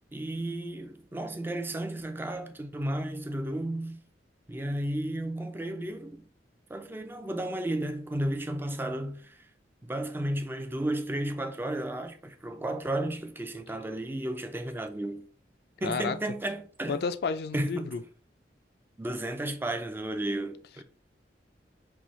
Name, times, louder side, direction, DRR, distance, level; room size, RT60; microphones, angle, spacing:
voice 1, 0.1-4.0 4.5-6.2 6.7-9.5 9.8-15.2 15.8-17.0 17.5-17.9 19.0-20.8, right 1 dB, 10° right, 0.4 m, -33 dB
voice 2, 15.8-16.2 16.9-18.0, left 5 dB, 60° left, 0.4 m, -31 dB
5.5 x 2.7 x 3.1 m
head